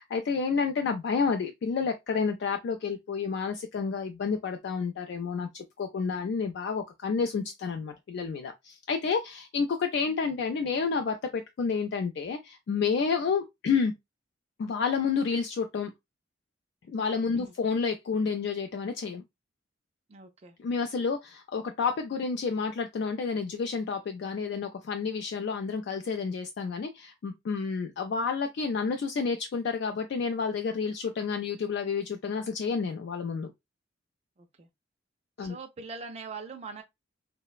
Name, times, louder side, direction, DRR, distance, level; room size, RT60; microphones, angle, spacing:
voice 1, 0.0-13.9 14.6-15.9 16.9-19.2 20.6-33.5 35.4-35.6, left 5 dB, 60° left, 0.3 m, -30 dB
voice 2, 20.1-20.6 34.4-34.7 35.4-36.8, right 4 dB, 35° right, 0.3 m, -42 dB
3.1 x 2.0 x 2.2 m
head